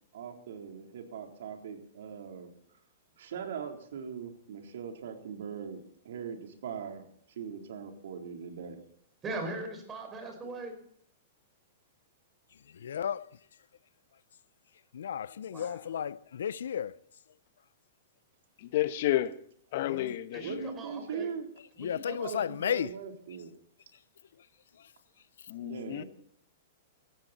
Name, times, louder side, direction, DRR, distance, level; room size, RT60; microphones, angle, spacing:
voice 1, 0.1-2.5 3.2-7.1 7.4-8.8 20.3-21.5 21.9-23.5 25.6-26.1, right 7 dB, 75° right, 3.7 m, -40 dB
voice 2, 9.2-10.7 15.5-15.8 20.3-21.3 21.8-22.4, right 2 dB, 20° right, 5.1 m, -40 dB
voice 3, 12.7-13.3 14.9-17.0 19.8-20.1 21.8-22.9, left 8 dB, 85° left, 0.7 m, -33 dB
voice 4, 18.6-19.4 19.7-20.7 25.5-26.0, left 14 dB, 55° left, 1.2 m, -31 dB
18.0 x 15.0 x 4.3 m
hypercardioid pair, 140°, 0 cm